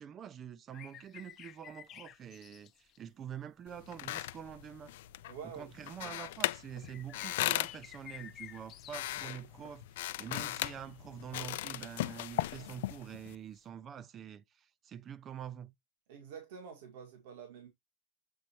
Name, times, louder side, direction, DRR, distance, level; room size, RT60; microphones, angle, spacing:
voice 1, 0.0-4.9 5.4-15.7, right 9 dB, 30° right, 0.4 m, -46 dB
sound 1, 0.7-3.0 3.9-4.0 4.9-5.0 6.8-9.3 10.8-11.0 13.6-13.7, left 11 dB, 35° left, 0.7 m, -52 dB
sound 2, 3.7-13.3, left 16 dB, 90° left, 0.4 m, -38 dB
voice 2, 5.3-5.7 6.0-6.2 16.1-17.7, right 7 dB, 85° right, 1.8 m, -47 dB
7.7 x 4.2 x 2.9 m
supercardioid pair, 145°, 0 cm